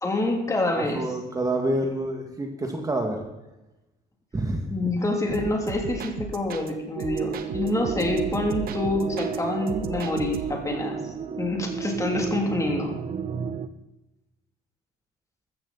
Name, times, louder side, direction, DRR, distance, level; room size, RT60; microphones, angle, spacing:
voice 1, 0.0-1.1 4.7-13.0, left 2 dB, 20° left, 2 dB, 3.0 m, -27 dB
voice 2, 0.8-3.2 4.3-4.7, right 1 dB, 20° right, 2 dB, 2.1 m, -27 dB
sound 1, 5.3-6.7 7.0-9.4 9.7-10.7, right 7 dB, 60° right, 1.2 m, -36 dB
sound 2, 7.0-13.7, right 7 dB, 40° right, 0.8 m, -32 dB
15.0 x 13.5 x 4.2 m, 0.98 s
cardioid pair, 110°, 17 cm